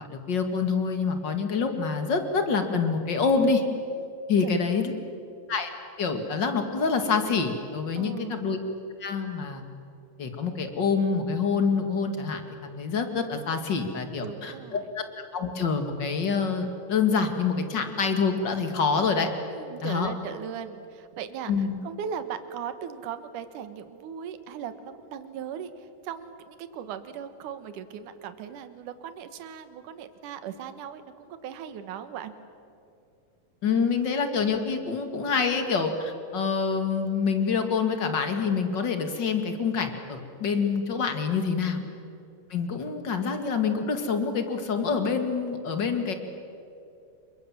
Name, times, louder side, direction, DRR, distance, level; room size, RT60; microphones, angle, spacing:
voice 1, 0.0-3.6 4.3-4.9 5.5-5.7 6.0-8.6 9.0-9.6 10.2-19.3 19.8-20.1 21.5-21.7 33.6-41.8 42.5-46.1, left 5 dB, 35° left, 7 dB, 2.2 m, -26 dB
voice 2, 4.4-5.2 7.9-8.5 14.2-14.9 19.5-32.3 41.8-42.0, right 8 dB, 70° right, 10 dB, 2.7 m, -38 dB
28.0 x 23.5 x 7.6 m, 2.6 s
omnidirectional pair, 4.0 m